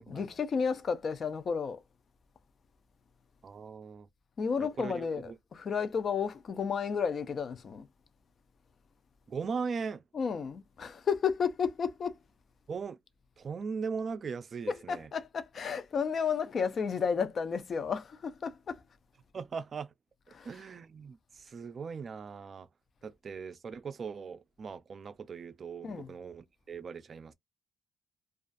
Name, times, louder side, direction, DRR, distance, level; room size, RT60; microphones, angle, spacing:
voice 1, 0.1-1.8 4.4-7.9 10.1-12.2 14.7-18.8 20.3-20.6 25.8-26.1, left 6 dB, 50° left, 0.5 m, -32 dB
voice 2, 3.4-4.1 4.6-5.3 9.3-10.0 12.7-13.0 13.4-15.1 19.3-19.9 20.4-22.7 23.0-27.3, right 5 dB, 45° right, 0.3 m, -39 dB
2.4 x 2.3 x 2.4 m
cardioid pair, 90°, 0 cm